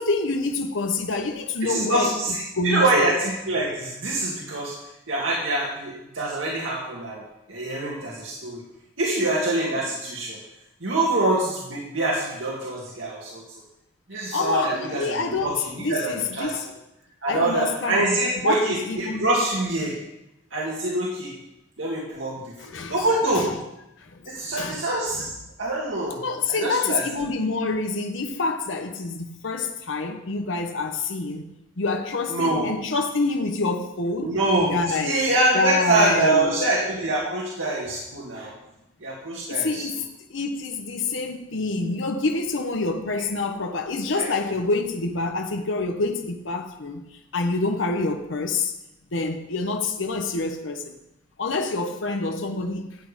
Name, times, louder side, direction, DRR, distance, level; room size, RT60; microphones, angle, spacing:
voice 1, 0.0-2.1 2.5-3.1 14.3-16.7 17.3-19.4 22.6-23.1 23.3-23.5 24.1-24.3 24.5-24.9 25.2-25.3 26.2-31.5 31.8-34.4 34.7-35.2 35.5-36.7 39.5-47.0 47.3-48.7 49.1-50.9 51.4-53.0, left 3 dB, 85° left, 1.0 m, -27 dB
voice 2, 1.6-4.7 5.1-7.2 7.5-8.6 9.0-10.4 10.8-13.4 14.1-16.5 17.2-19.9 20.5-21.3 21.8-22.4 22.9-23.5 24.3-25.3 25.6-26.2 26.6-27.0 32.3-32.7 34.2-34.7 35.0-38.5 39.0-39.8 44.2-44.3, right 2 dB, 80° right, 2.1 m, -25 dB
13.0 x 8.4 x 5.0 m
head